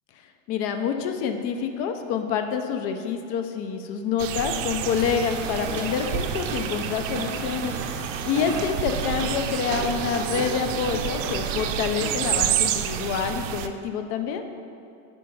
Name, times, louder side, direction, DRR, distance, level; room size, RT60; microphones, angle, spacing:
voice 1, 0.5-7.7 8.2-14.4, left 7 dB, 35° left, 6 dB, 0.5 m, -27 dB
sound 1, 4.2-13.7, right 10 dB, 70° right, 0.5 m, -29 dB
sound 2, 4.8-12.5, right 4 dB, 40° right, 0.8 m, -34 dB
5.2 x 4.7 x 5.9 m, 2.6 s
supercardioid pair, 140°, 39 cm